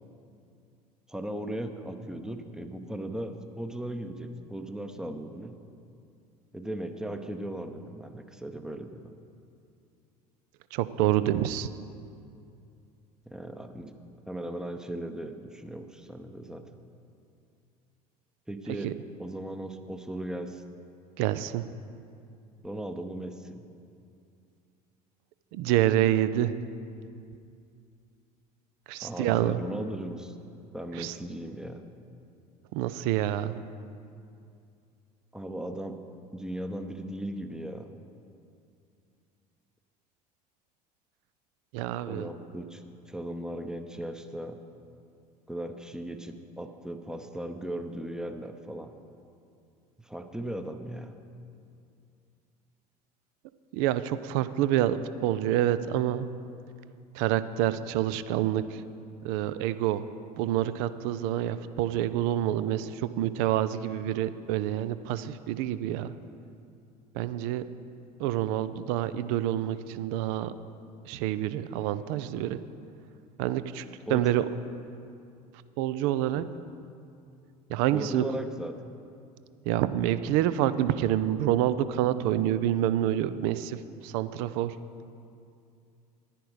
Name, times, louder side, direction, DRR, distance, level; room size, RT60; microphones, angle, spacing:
voice 1, 1.1-5.6 6.5-9.1 13.3-13.9 14.3-16.7 18.5-20.6 22.6-23.6 29.0-30.4 30.7-31.8 35.3-36.0 36.3-37.9 42.1-44.6 45.5-48.9 50.0-51.1 74.1-74.5 76.4-76.5 77.9-78.7, right 1 dB, 5° right, 7 dB, 0.8 m, -37 dB
voice 2, 10.7-11.7 18.8-18.9 21.2-21.7 25.5-26.6 28.9-29.6 30.9-31.2 32.7-33.6 41.7-42.3 53.7-56.3 57.1-58.8 59.2-60.0 60.4-66.1 67.1-67.7 68.2-70.5 71.0-72.6 73.4-73.8 74.1-74.4 75.8-76.4 77.7-78.2 79.6-84.8, right 12 dB, 55° right, 14 dB, 0.5 m, -27 dB
10.5 x 10.5 x 4.9 m, 2.5 s
figure-of-eight pair, 65°, 20 cm